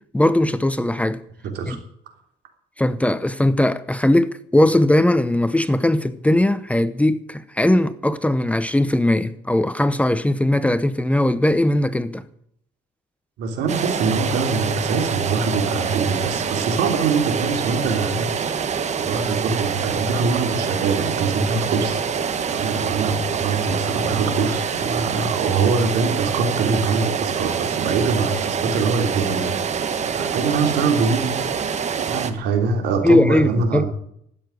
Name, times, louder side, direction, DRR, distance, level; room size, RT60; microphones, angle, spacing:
voice 1, 0.1-1.2 1.7-1.8 2.8-12.3 33.0-33.8, left 1 dB, 10° left, 0.8 m, -19 dB
voice 2, 1.4-1.8 13.4-18.3 19.0-22.0 22.5-29.5 30.1-31.4 32.0-33.9, right 4 dB, 80° right, 3.3 m, -23 dB
sound 1, 13.7-32.3, right 6 dB, 45° right, 1.5 m, -25 dB
12.5 x 9.1 x 9.7 m
cardioid pair, 110°, 17 cm